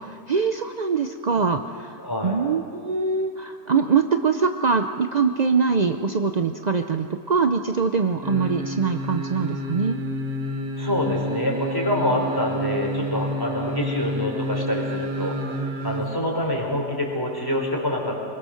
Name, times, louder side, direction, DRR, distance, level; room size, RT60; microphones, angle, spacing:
voice 1, 0.0-10.0, right 5 dB, 45° right, 6 dB, 0.5 m, -23 dB
voice 2, 2.0-2.4 10.8-15.3 15.8-18.3, left 1 dB, 15° left, 0 dB, 4.3 m, -26 dB
sound 1, 8.2-16.1 16.4-16.5, equal, 80° right, 2.3 m, -29 dB
25.5 x 21.5 x 6.5 m, 2.4 s
omnidirectional pair, 1.7 m